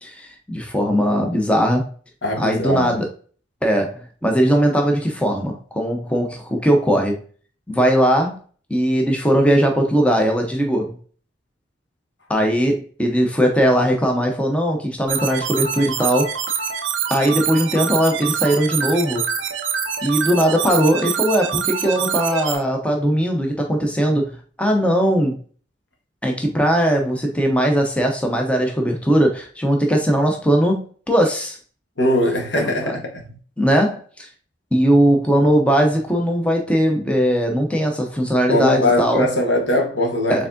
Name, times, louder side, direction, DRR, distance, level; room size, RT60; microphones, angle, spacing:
voice 1, 0.0-1.9 2.4-3.1 3.6-7.2 7.7-8.4 8.7-11.0 12.3-16.3 17.1-19.2 20.0-25.4 26.2-31.6 32.5-33.0 33.6-34.3 34.7-39.3 40.3-40.5, equal, 5° left, 0.5 m, -19 dB
voice 2, 2.2-2.9 32.0-33.1 38.5-40.5, left 1 dB, 75° left, 1.1 m, -20 dB
sound 1, 15.1-22.6, right 8 dB, 85° right, 0.5 m, -25 dB
4.6 x 3.5 x 2.5 m
head